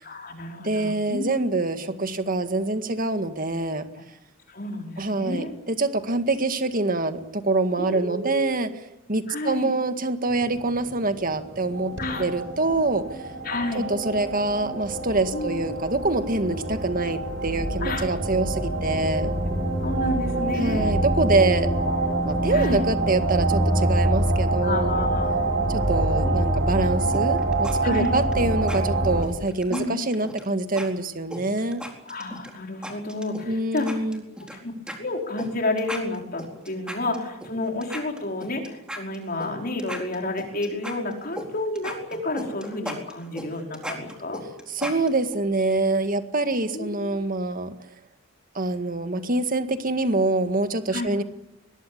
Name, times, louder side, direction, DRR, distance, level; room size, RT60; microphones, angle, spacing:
voice 1, 0.0-1.4 4.5-5.5 7.8-8.6 9.3-9.7 12.0-12.3 13.4-13.9 15.3-15.6 17.8-18.1 19.8-21.0 21.3-21.7 22.5-22.9 24.6-25.5 26.2-26.9 27.8-28.2 29.7-30.0 32.0-34.0 34.4-34.7 35.0-44.4 46.7-47.2 50.9-51.1, left 2 dB, 45° left, 2 dB, 4.8 m, -30 dB
voice 2, 0.6-3.9 5.0-8.7 9.1-13.2 13.7-19.3 20.6-21.7 22.3-25.1 25.7-31.8 33.5-34.2 44.7-47.8 48.6-51.2, right 2 dB, 45° right, 8 dB, 1.9 m, -25 dB
sound 1, 10.3-29.2, right 2 dB, 60° right, 6.4 m, -26 dB
sound 2, 27.1-27.7 28.0-28.3 28.7-28.8 29.2-30.4 30.8-30.9 31.3-32.5 32.8-33.5 33.8-34.6 34.9-35.0 35.4-35.5 35.8-37.5 37.8-39.5 39.8-41.5 41.8-45.4, equal, 5° right, 4.2 m, -36 dB
22.5 x 20.5 x 8.8 m, 0.84 s
head